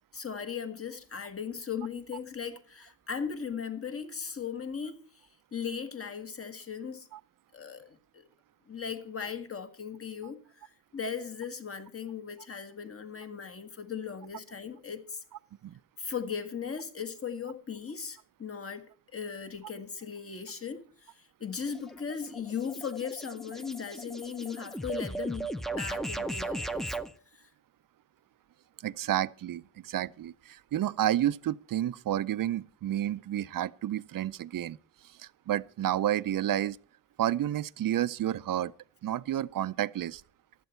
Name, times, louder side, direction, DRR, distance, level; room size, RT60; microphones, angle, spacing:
voice 1, 0.1-7.1 7.5-8.2 8.7-10.6 10.9-15.2 16.0-18.9 19.1-25.5 25.7-27.0 27.3-27.5, left 6 dB, 45° left, 1.7 m, -38 dB
sound 1, 21.7-27.1, right 2 dB, ahead, 0.6 m, -37 dB
voice 2, 28.8-34.8 35.2-36.8 37.2-38.7 39.0-40.2, right 12 dB, 85° right, 0.6 m, -30 dB
15.0 x 12.0 x 4.4 m
wide cardioid pair, 125°, 32 cm